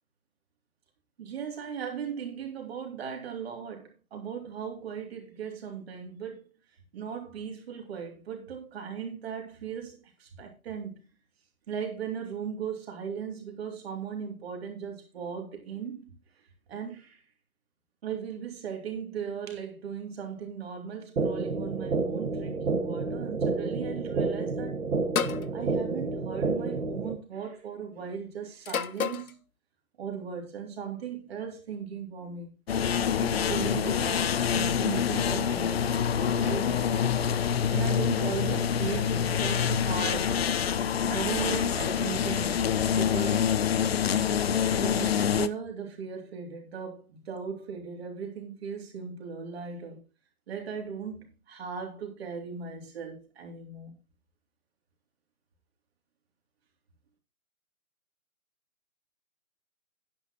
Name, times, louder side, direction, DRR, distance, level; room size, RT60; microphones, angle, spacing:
voice 1, 1.2-6.5 6.9-11.0 11.7-16.2 16.7-17.2 18.0-24.9 25.5-29.4 30.0-32.5 33.2-37.0 37.7-40.4 41.1-43.5 44.7-50.0 50.5-54.0, right 7 dB, 45° right, 3.5 m, -37 dB
sound 1, 21.2-27.2, right 3 dB, 70° right, 2.0 m, -30 dB
sound 2, 25.1-25.5 26.7-27.0 28.6-29.3, left 7 dB, 80° left, 0.7 m, -30 dB
sound 3, 32.7-45.5, left 8 dB, 45° left, 0.6 m, -26 dB
10.0 x 8.3 x 4.3 m
figure-of-eight pair, 140°, 42 cm